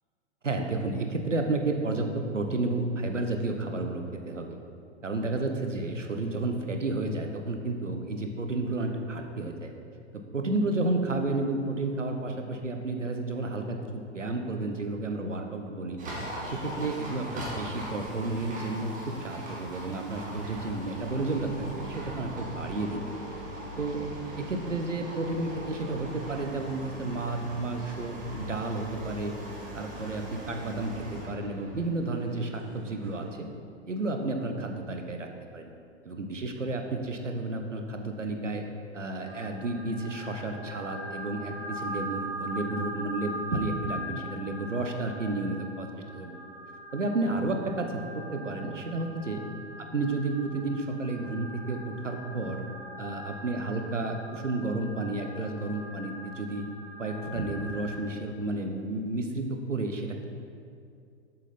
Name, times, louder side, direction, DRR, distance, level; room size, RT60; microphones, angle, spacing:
voice 1, 0.4-4.6 5.0-9.7 10.1-16.0 16.4-23.2 23.8-24.1 24.4-29.3 29.7-33.5 33.9-35.3 35.5-35.7 36.0-38.6 38.9-46.4 46.9-49.4 49.9-52.6 53.0-56.7 57.0-60.2, right 2 dB, 90° right, 4 dB, 0.9 m, -31 dB
Livestock farm animals working animals, 16.0-31.2, right 1 dB, 20° right, 2.0 m, -40 dB
sound 1, 19.9-33.3, right 3 dB, 60° right, 1.5 m, -46 dB
sound 2, 39.2-57.9, equal, 25° left, 2.2 m, -41 dB
7.8 x 7.3 x 4.2 m, 2.4 s
figure-of-eight pair, 105°, 36 cm